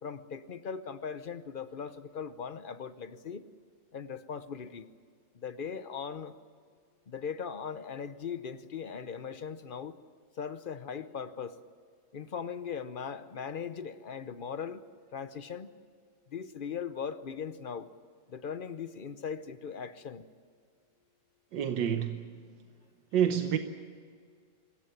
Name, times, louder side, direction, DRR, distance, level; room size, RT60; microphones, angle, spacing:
voice 1, 0.0-3.5 3.9-4.9 5.3-6.3 7.1-10.0 10.4-11.6 12.1-14.8 15.1-15.7 16.3-17.9 18.3-20.3, left 6 dB, 45° left, 0.7 m, -39 dB
voice 2, 21.5-22.2 23.1-23.6, right 9 dB, 85° right, 1.6 m, -28 dB
25.0 x 14.5 x 9.8 m
omnidirectional pair, 1.9 m